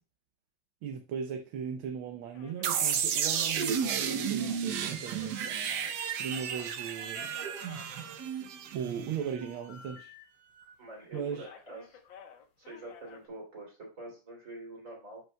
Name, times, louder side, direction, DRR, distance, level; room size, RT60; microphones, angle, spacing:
voice 1, 0.8-5.4 6.1-7.4 8.7-10.1 11.1-11.5, right 7 dB, 80° right, 1.6 m, -38 dB
sound 1, 2.3-5.9 6.2-8.7 9.4-10.8 11.1-13.3, left 7 dB, 70° left, 1.8 m, -53 dB
sound 2, 2.6-9.4, right 8 dB, 65° right, 1.2 m, -32 dB
voice 2, 10.8-12.0 12.6-15.2, right 1 dB, 40° right, 3.2 m, -46 dB
12.0 x 5.3 x 2.3 m
omnidirectional pair, 2.2 m